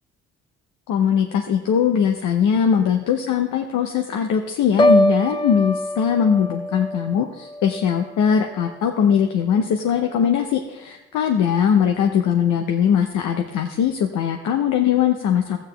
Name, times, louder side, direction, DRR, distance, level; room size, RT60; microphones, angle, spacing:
voice 1, 0.9-15.6, left 8 dB, 80° left, 4 dB, 0.8 m, -20 dB
Piano, 4.8-8.7 9.1-9.5, equal, 15° left, 0.3 m, -23 dB
13.0 x 8.8 x 3.3 m, 1.0 s
cardioid pair, 90°, 30 cm